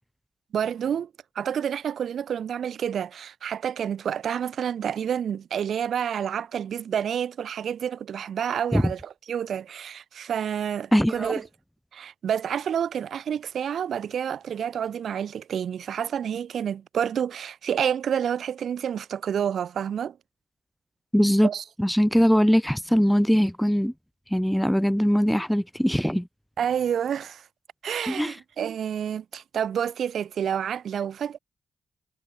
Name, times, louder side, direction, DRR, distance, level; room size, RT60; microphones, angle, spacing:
voice 1, 0.5-1.1 1.3-11.4 11.9-20.2 21.4-21.6 26.6-27.4 27.8-31.4, right 8 dB, 75° right, 1.1 m, -29 dB
voice 2, 10.9-11.4 21.1-21.5 21.8-23.9 24.3-26.3 28.1-28.4, equal, ahead, 0.4 m, -21 dB
cardioid pair, 70°, 0 cm